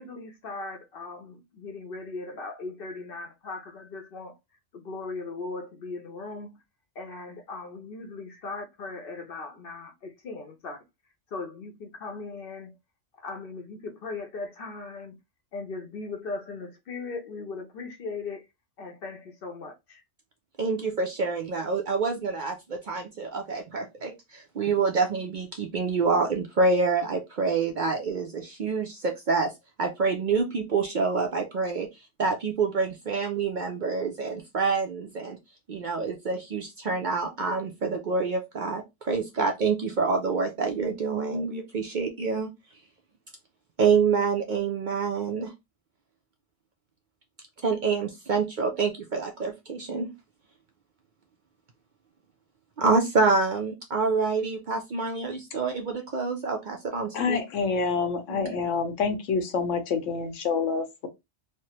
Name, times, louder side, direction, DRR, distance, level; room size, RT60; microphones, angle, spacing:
voice 1, 0.0-4.4 4.7-6.6 7.0-10.8 11.3-12.8 13.2-15.1 15.5-18.5 18.8-20.0, left 3 dB, 60° left, 0.7 m, -38 dB
voice 2, 20.6-29.5 29.8-31.9 32.2-35.4 35.7-42.5 43.8-45.5 47.6-50.1 52.8-57.4 58.3-58.5, right 4 dB, 55° right, 0.5 m, -27 dB
voice 3, 57.1-61.1, left 5 dB, 85° left, 1.0 m, -27 dB
3.3 x 2.1 x 2.8 m
omnidirectional pair, 1.3 m